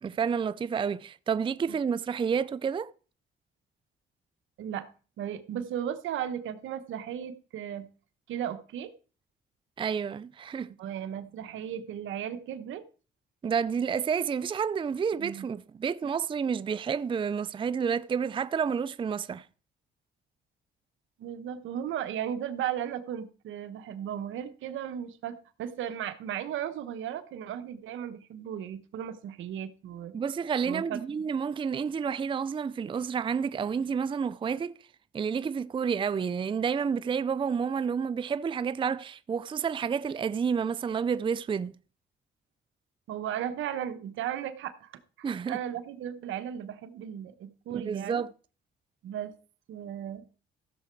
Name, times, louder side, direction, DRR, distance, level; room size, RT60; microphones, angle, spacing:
voice 1, 0.0-2.9 9.8-10.7 13.4-19.5 30.1-34.7 35.1-41.7 45.2-45.6 47.7-48.3, right 6 dB, 25° right, 0.4 m, -30 dB
voice 2, 5.2-7.9 8.3-8.9 10.8-12.8 15.2-15.5 21.2-30.1 30.6-31.0 43.1-44.9 45.2-48.2 49.0-49.3 49.7-50.2, right 10 dB, 80° right, 1.0 m, -36 dB
15.0 x 6.8 x 4.6 m
cardioid pair, 90°, 20 cm